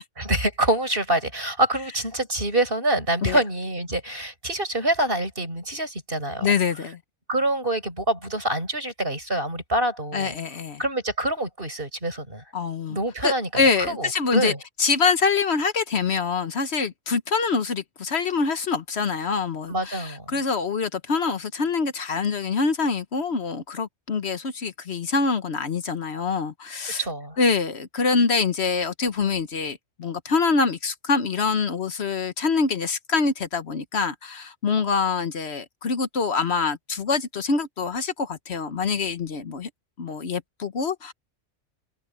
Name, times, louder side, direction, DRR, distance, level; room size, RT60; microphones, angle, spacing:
voice 1, 0.2-6.5 7.3-10.3 10.8-12.4 12.9-14.6 19.7-20.4 26.8-27.4, right 1 dB, 50° right, 7.6 m, -26 dB
voice 2, 6.4-7.0 10.1-10.8 12.5-14.5 14.8-27.0 27.4-39.7 40.0-41.1, left 5 dB, 65° left, 1.3 m, -25 dB
omnidirectional pair, 1.2 m